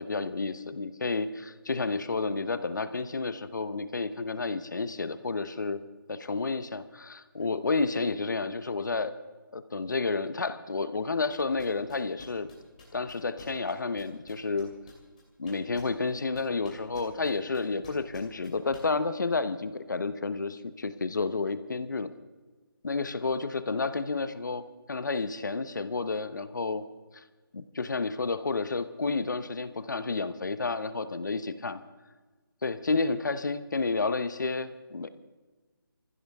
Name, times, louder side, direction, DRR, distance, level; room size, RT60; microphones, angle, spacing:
voice 1, 0.0-5.8 6.1-9.1 9.5-12.5 12.9-14.7 15.4-22.1 22.8-26.8 27.1-27.2 27.5-31.8 32.6-35.2, left 3 dB, 55° left, 12 dB, 0.9 m, -31 dB
sound 1, 11.3-18.8, left 4 dB, 20° left, 2.7 m, -50 dB
24.0 x 15.0 x 3.6 m, 1.3 s
hypercardioid pair, 180°, 12 cm